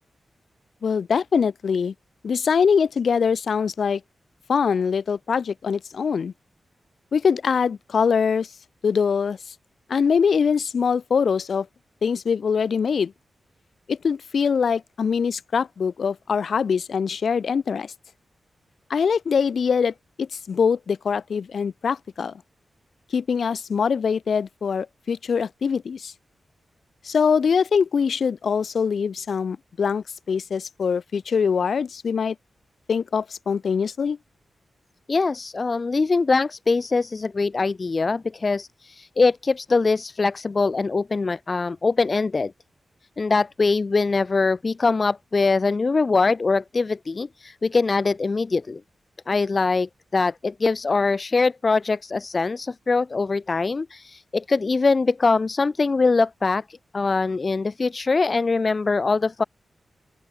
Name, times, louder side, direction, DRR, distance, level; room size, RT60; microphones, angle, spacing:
voice 1, 0.8-1.9 2.2-4.0 4.5-6.3 7.1-8.5 8.8-9.4 9.9-11.7 12.0-13.1 13.9-17.9 18.9-22.3 23.1-26.1 27.0-32.4 32.9-34.2, left 6 dB, 65° left, 2.6 m, -23 dB
voice 2, 35.1-42.5 43.2-48.8 49.3-59.4, left 4 dB, 35° left, 4.2 m, -22 dB
open air
wide cardioid pair, 135°, 0 cm